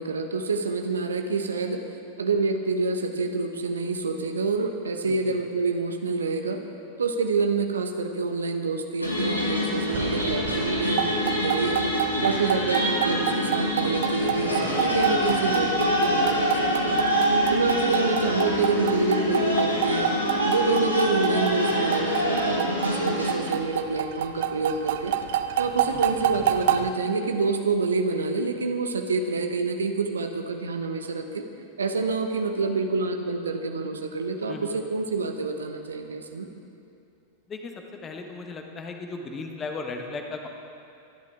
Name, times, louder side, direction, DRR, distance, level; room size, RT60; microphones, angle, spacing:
voice 1, 0.0-1.8 2.2-6.6 7.0-11.1 11.3-11.8 12.2-17.0 17.5-20.1 20.5-25.2 25.6-31.4 31.8-36.5, right 3 dB, 70° right, 5 dB, 1.1 m, -27 dB
sound 1, 9.0-23.3, equal, 85° left, 2.3 m, -25 dB
sound 2, 9.9-26.9, right 10 dB, 55° right, 0.7 m, -29 dB
voice 2, 38.0-40.5, left 3 dB, 20° left, 3 dB, 1.5 m, -36 dB
24.5 x 11.5 x 3.7 m, 2.5 s
figure-of-eight pair, 90°, 0 cm